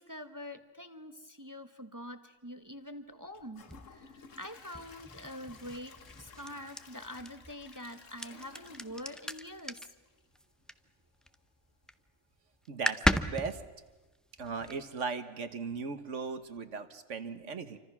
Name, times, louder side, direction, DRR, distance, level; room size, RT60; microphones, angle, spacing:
voice 1, 0.0-9.9, left 1 dB, 15° right, 8 dB, 0.9 m, -45 dB
Gurgling / Toilet flush / Trickle dribble, 3.3-10.4 10.8-10.9 11.4-11.5, left 5 dB, 80° left, 1.7 m, -55 dB
sound 1, 3.7-11.4 11.7-12.1 12.4-12.5 12.7-15.0, equal, ahead, 0.4 m, -36 dB
voice 2, 12.7-13.6 14.4-17.8, right 5 dB, 75° right, 10 dB, 1.6 m, -38 dB
28.0 x 25.0 x 6.1 m, 1.2 s
omnidirectional pair, 1.3 m